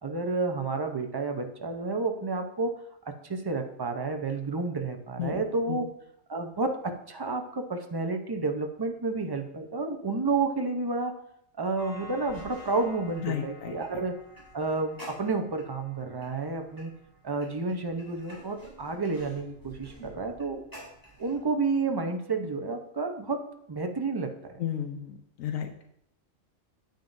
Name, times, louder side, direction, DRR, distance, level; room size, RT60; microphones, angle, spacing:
voice 1, 0.0-2.7 3.1-5.9 6.3-11.2 11.6-14.2 14.5-16.9 17.2-20.6 21.2-24.6, right 3 dB, 25° right, 5 dB, 0.6 m, -30 dB
sound 1, 11.8-21.3, right 1 dB, 15° left, 3.2 m, -49 dB
voice 2, 13.2-13.7 24.6-25.7, left 9 dB, 85° left, 5 dB, 1.1 m, -33 dB
9.0 x 9.0 x 2.6 m, 0.75 s
omnidirectional pair, 1.3 m